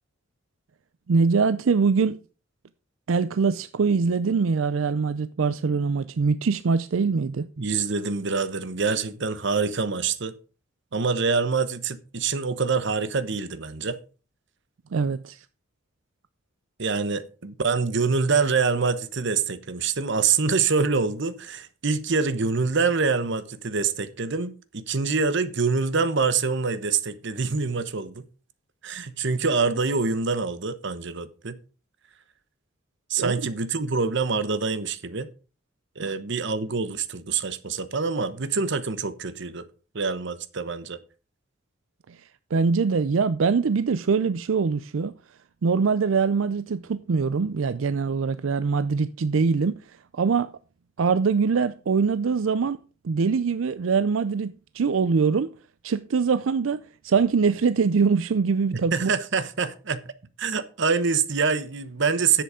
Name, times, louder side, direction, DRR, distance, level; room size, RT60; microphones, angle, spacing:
voice 1, 1.1-2.2 3.1-7.5 14.9-15.5 33.2-33.3 36.0-36.1 42.1-45.2 45.6-50.5 51.0-52.8 53.0-55.5 55.8-59.1, right 5 dB, 90° right, 0.5 m, -23 dB
voice 2, 7.6-10.3 10.9-14.0 16.8-28.2 28.8-31.6 33.1-35.3 36.0-39.6 39.9-41.0 58.9-60.0 60.4-62.4, right 4 dB, 65° right, 1.0 m, -25 dB
10.0 x 7.8 x 5.0 m
head